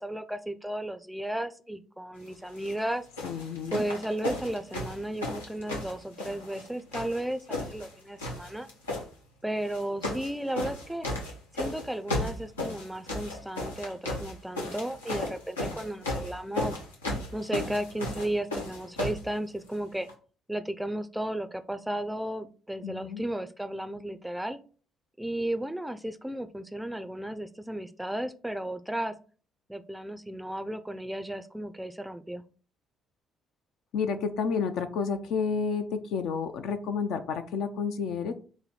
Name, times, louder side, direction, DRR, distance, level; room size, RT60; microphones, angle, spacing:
voice 1, 0.0-3.1 3.7-8.7 9.4-11.1 11.5-16.8 17.3-20.1 20.5-24.6 25.2-29.2 29.7-32.4, right 1 dB, 5° right, 11 dB, 0.4 m, -34 dB
sound 1, 2.5-2.8 3.2-6.7 6.9-7.9 8.2-9.0 9.7-10.3 10.6-19.3 20.1-20.2, left 2 dB, 90° left, 0.7 m, -34 dB
voice 2, 3.2-3.8 22.8-23.2 33.9-38.3, left 5 dB, 65° left, 8 dB, 0.4 m, -30 dB
3.1 x 2.6 x 3.9 m, 0.40 s
hypercardioid pair, 50°, 0 cm